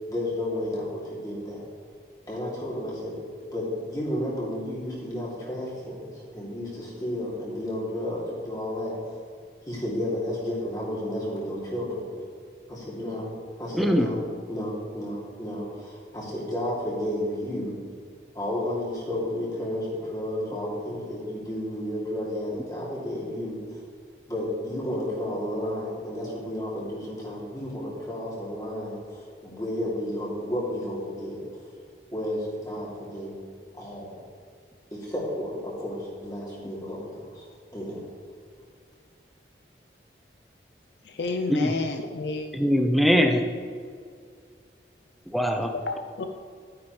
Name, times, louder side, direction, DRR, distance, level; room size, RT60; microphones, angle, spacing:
voice 1, 0.1-1.6 2.3-3.2 3.4-8.9 9.7-12.0 12.7-14.2 14.5-17.7 18.3-23.8 24.3-31.4 32.1-33.3 33.8-34.2 34.9-37.5 37.7-38.0, left 1 dB, 20° left, -6 dB, 2.7 m, -32 dB
voice 2, 13.7-14.1 41.5-41.7 42.6-43.5 45.3-45.7, equal, ahead, 5 dB, 0.6 m, -21 dB
voice 3, 41.2-42.4 45.7-46.2, left 3 dB, 75° left, 5 dB, 0.5 m, -30 dB
12.0 x 9.6 x 3.2 m, 2.2 s
head